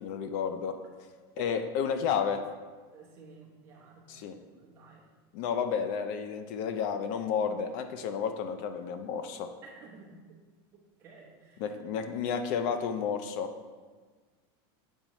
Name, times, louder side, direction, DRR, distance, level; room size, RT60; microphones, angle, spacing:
voice 1, 0.0-0.7 1.4-2.4 4.1-4.4 5.3-9.5 11.6-13.5, left 7 dB, 50° left, 8 dB, 0.4 m, -31 dB
voice 2, 2.9-5.1 9.6-10.2 10.7-11.7, right 4 dB, 20° right, -6 dB, 0.9 m, -53 dB
7.1 x 5.2 x 3.0 m, 1.5 s
supercardioid pair, 165°, 13 cm